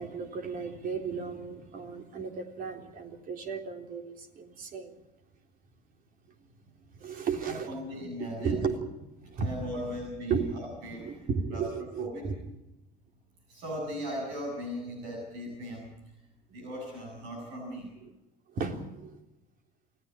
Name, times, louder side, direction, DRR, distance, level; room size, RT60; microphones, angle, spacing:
voice 1, 0.0-5.0 6.7-9.7 10.3-10.5 11.0-12.4 18.5-19.2, right 5 dB, 45° right, 4 dB, 3.7 m, -35 dB
voice 2, 7.5-8.6 9.4-11.7 12.0-12.3 13.5-15.9 16.5-17.9, equal, 65° right, 0 dB, 7.5 m, -38 dB
28.5 x 18.0 x 5.1 m, 0.92 s
hypercardioid pair, 65°, 19 cm